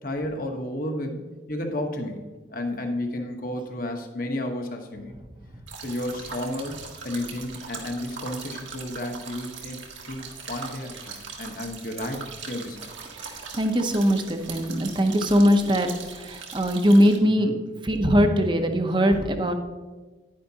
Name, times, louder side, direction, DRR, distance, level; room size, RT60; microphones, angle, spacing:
voice 1, 0.0-1.2 1.5-5.1 5.8-6.8 7.0-9.8 10.0-12.9 17.4-17.5, left 1 dB, 50° left, 4 dB, 1.2 m, -32 dB
sound 1, 5.7-17.2, right 5 dB, 85° right, 1.7 m, -40 dB
voice 2, 13.2-17.5 17.8-19.5, equal, 25° right, 6 dB, 0.8 m, -21 dB
10.0 x 10.0 x 2.9 m, 1.3 s
head